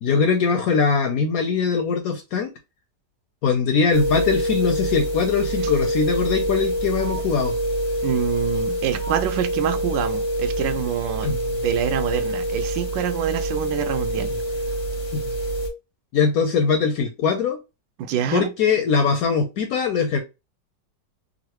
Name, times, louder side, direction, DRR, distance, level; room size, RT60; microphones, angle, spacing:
voice 1, 0.0-2.5 3.4-7.6 11.2-11.6 15.1-15.2 16.1-17.6 18.3-20.2, left 5 dB, 75° left, 0.8 m, -21 dB
sound 1, 3.9-15.7, right 1 dB, 40° left, 0.5 m, -26 dB
voice 2, 8.0-11.3 11.6-14.3 18.0-18.5, right 10 dB, 85° right, 1.3 m, -26 dB
3.7 x 2.0 x 2.9 m
omnidirectional pair, 1.9 m